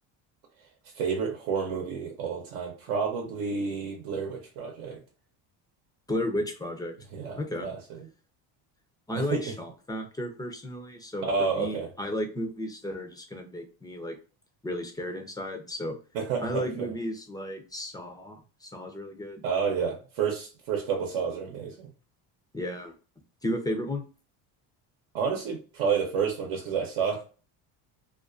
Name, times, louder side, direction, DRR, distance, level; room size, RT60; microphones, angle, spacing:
voice 1, 0.9-5.0 7.1-8.0 9.1-9.5 11.2-11.9 16.1-16.9 19.4-21.9 25.1-27.2, right 6 dB, 75° right, 1 dB, 0.8 m, -30 dB
voice 2, 6.1-6.9 7.4-7.7 9.1-14.2 14.6-16.0 16.4-19.4 22.5-22.9 23.4-24.0, left 1 dB, 10° left, 4 dB, 0.4 m, -33 dB
2.4 x 2.3 x 2.4 m, 0.36 s
supercardioid pair, 100°, 49 cm